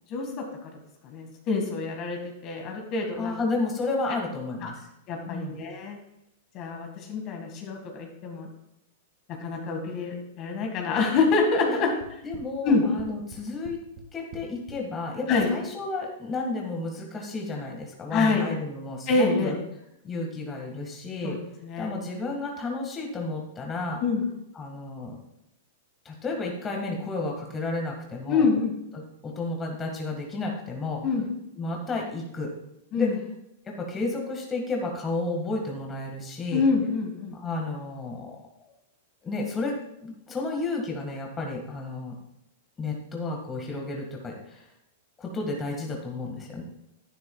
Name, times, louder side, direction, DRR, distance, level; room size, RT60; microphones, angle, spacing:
voice 1, 0.1-0.7 1.0-3.4 4.6-4.7 5.1-6.0 6.5-8.5 9.4-11.9 12.6-12.8 15.3-15.5 18.1-18.5 19.1-19.6 21.2-21.4 21.6-21.9 24.0-24.2 28.3-28.7 31.0-31.3 32.9-33.2 36.5-37.4, left 4 dB, 40° left, 3 dB, 1.8 m, -26 dB
voice 2, 3.2-4.8 5.3-5.6 11.7-11.9 12.2-13.8 14.1-19.6 20.0-21.4 21.8-24.0 24.6-25.2 26.1-28.5 28.9-31.0 31.6-32.5 32.9-33.1 33.6-36.6 37.3-38.4 39.2-39.8 40.0-42.1 42.8-44.7 45.2-46.6, left 3 dB, 20° left, 0 dB, 1.8 m, -32 dB
sound 1, 12.0-14.8, right 4 dB, 55° right, 2.0 m, -44 dB
10.5 x 9.6 x 2.3 m, 0.83 s
hypercardioid pair, 130°, 0 cm